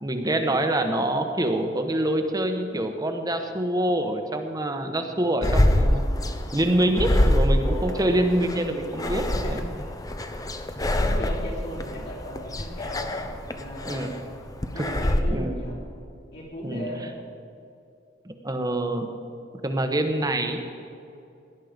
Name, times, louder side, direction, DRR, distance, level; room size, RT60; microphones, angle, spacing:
voice 1, 0.0-6.0 6.5-9.6 13.8-14.2 14.8-14.9 15.3-15.5 16.6-16.9 18.2-19.1 19.6-20.6, right 1 dB, 20° right, 5 dB, 1.2 m, -25 dB
sound 1, 5.4-15.2, left 1 dB, 20° left, 0.8 m, -25 dB
voice 2, 7.6-8.3 9.4-9.9 10.8-13.1 13.4-14.2 14.7-15.8 16.3-17.1, equal, 60° left, -5 dB, 4.0 m, -36 dB
18.0 x 11.0 x 5.2 m, 2.5 s
head